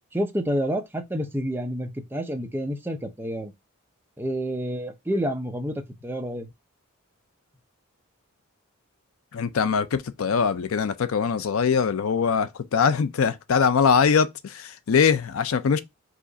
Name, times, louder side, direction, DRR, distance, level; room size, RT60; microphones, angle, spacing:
voice 1, 0.1-3.5 4.2-6.5, equal, 10° right, 0.6 m, -29 dB
voice 2, 9.3-15.8, left 6 dB, 70° left, 0.4 m, -22 dB
4.8 x 2.5 x 3.8 m
head